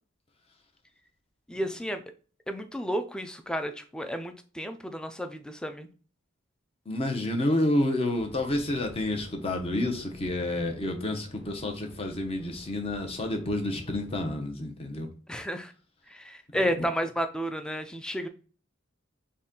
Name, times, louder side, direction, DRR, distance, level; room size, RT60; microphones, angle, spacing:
voice 1, 1.5-2.0 2.5-5.9 15.3-15.7 16.1-18.3, equal, 5° left, 0.3 m, -32 dB
voice 2, 6.9-15.1 16.6-16.9, left 1 dB, 30° left, 0.7 m, -29 dB
sound 1, 8.1-14.3, left 1 dB, 80° left, 0.9 m, -49 dB
4.0 x 2.2 x 3.7 m
head